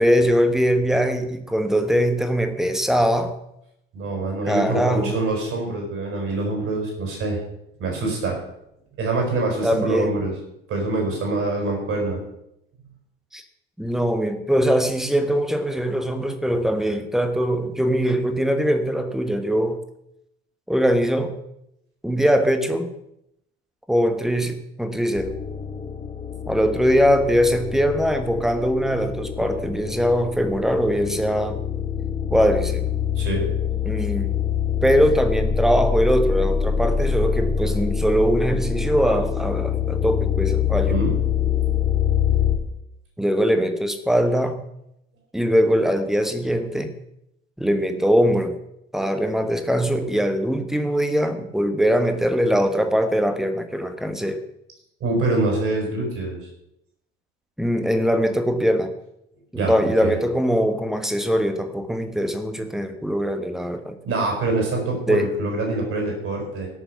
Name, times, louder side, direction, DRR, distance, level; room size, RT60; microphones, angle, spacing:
voice 1, 0.0-3.3 4.5-5.2 9.6-10.2 13.3-13.4 13.8-19.8 20.7-21.4 22.0-22.9 23.9-25.3 26.5-31.6 32.3-32.9 33.9-34.4 34.8-40.9 43.2-44.6 45.3-46.9 47.6-48.6 48.9-54.4 57.6-58.9 59.5-64.0 65.1-65.3, equal, ahead, 8 dB, 1.3 m, -21 dB
voice 2, 3.9-7.4 7.8-8.4 9.0-10.3 10.7-12.2 33.2-33.4 37.1-37.2 40.8-41.1 55.0-56.4 59.5-60.2 64.0-66.7, right 2 dB, 45° right, 1 dB, 5.7 m, -25 dB
sound 1, 25.2-42.6, left 7 dB, 25° left, 1.7 m, -25 dB
17.0 x 6.8 x 5.8 m, 0.81 s
figure-of-eight pair, 60°, 30 cm